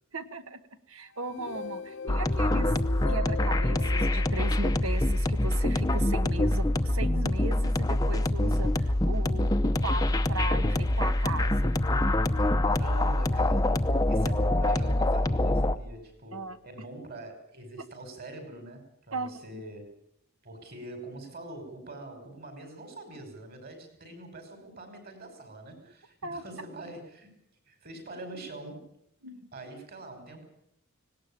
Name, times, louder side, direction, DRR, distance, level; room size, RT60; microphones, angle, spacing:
voice 1, 0.1-0.6 0.9-2.7 3.1-11.7 16.3-16.6 19.1-19.6 26.2-26.4 29.2-29.5, right 2 dB, 65° right, 10 dB, 1.4 m, -37 dB
sound 1, 1.1-5.4, left 4 dB, 55° left, 0.9 m, -40 dB
sound 2, 2.1-15.8, left 1 dB, 15° left, 0.8 m, -25 dB
voice 2, 12.7-19.9 20.4-27.3 27.7-28.9 29.5-30.4, right 2 dB, 45° right, 6 dB, 5.7 m, -44 dB
18.5 x 18.0 x 8.9 m, 0.75 s
head